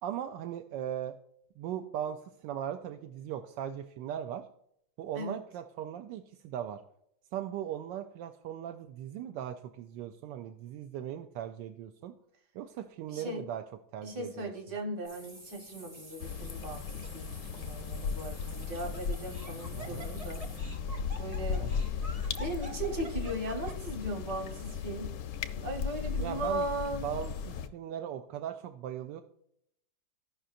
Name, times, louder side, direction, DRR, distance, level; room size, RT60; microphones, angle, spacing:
voice 1, 0.0-1.2 1.6-4.5 5.0-6.8 7.3-12.1 12.5-13.6 13.9-14.5 19.7-20.1 21.6-21.9 26.2-26.7 26.9-29.2, right 10 dB, 75° right, 6 dB, 1.1 m, -38 dB
voice 2, 13.1-13.4 14.0-16.8 17.1-17.3 17.6-20.4 21.2-21.7 22.4-25.1 25.6-27.1, right 1 dB, 60° right, 3 dB, 2.0 m, -37 dB
sound 1, 15.0-20.6, right 1 dB, 90° right, 4.9 m, -52 dB
Laughter, 15.9-16.4 17.0-17.1 18.4-24.0, right 1 dB, 30° right, 0.6 m, -48 dB
sound 2, 16.2-27.7, left 6 dB, 70° left, 1.1 m, -36 dB
15.5 x 5.5 x 2.5 m, 0.73 s
omnidirectional pair, 2.2 m